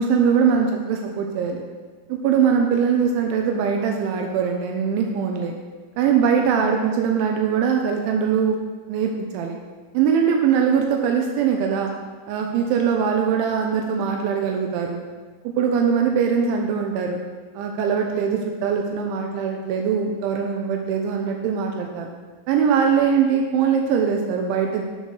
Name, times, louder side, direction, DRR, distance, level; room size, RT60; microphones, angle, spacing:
voice 1, 0.0-1.6 2.1-5.5 6.0-8.6 8.9-9.6 9.9-11.9 12.3-15.1 15.6-17.2 17.5-22.1 22.5-24.8, right 7 dB, 80° right, 2 dB, 3.2 m, -21 dB
12.5 x 7.3 x 6.3 m, 1.4 s
omnidirectional pair, 5.5 m